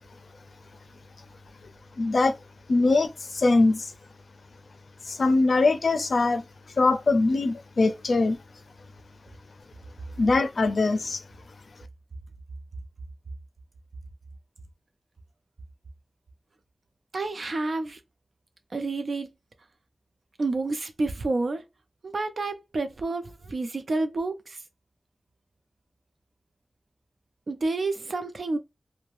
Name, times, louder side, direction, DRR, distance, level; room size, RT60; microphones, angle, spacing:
voice 1, 2.0-2.3 2.7-3.9 5.1-6.4 6.8-8.4 10.2-11.2, left 3 dB, 80° left, 0.4 m, -22 dB
voice 2, 17.1-18.0 18.7-19.3 20.4-21.6 22.0-24.6 27.5-28.6, right 3 dB, 75° right, 0.5 m, -29 dB
3.1 x 2.1 x 2.5 m
wide cardioid pair, 55°, 0 cm